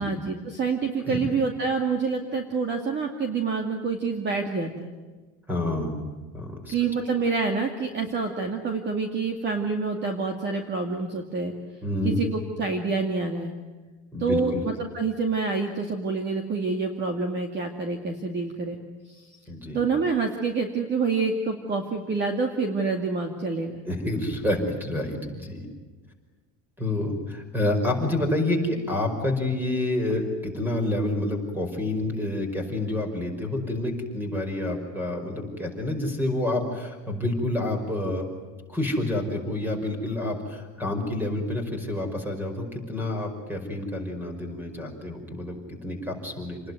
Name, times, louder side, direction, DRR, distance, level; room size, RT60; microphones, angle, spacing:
voice 1, 0.0-4.9 6.7-11.5 12.0-13.5 14.2-18.8 19.1-19.3 19.7-23.8, right 4 dB, 30° right, 4 dB, 2.3 m, -27 dB
voice 2, 5.5-5.9 6.3-6.7 11.8-12.2 14.1-14.6 19.5-19.8 23.9-25.7 26.8-38.3 38.7-46.6, left 1 dB, 5° right, 5 dB, 5.3 m, -28 dB
28.5 x 20.5 x 9.5 m, 1.3 s
cardioid pair, 175°, 37 cm